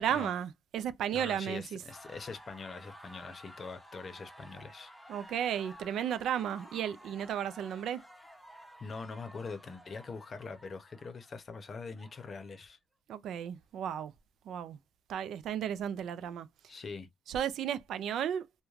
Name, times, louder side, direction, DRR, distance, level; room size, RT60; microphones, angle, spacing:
voice 1, 0.0-1.8 5.1-8.0 13.1-14.1 14.5-14.8 15.1-16.5 17.3-18.5, right 9 dB, 75° right, 0.4 m, -34 dB
voice 2, 1.1-4.9 8.8-12.8 16.7-17.1, left 4 dB, 40° left, 0.7 m, -43 dB
sound 1, 1.9-12.6, equal, 5° left, 0.7 m, -53 dB
3.1 x 2.2 x 2.4 m
cardioid pair, 90°, 0 cm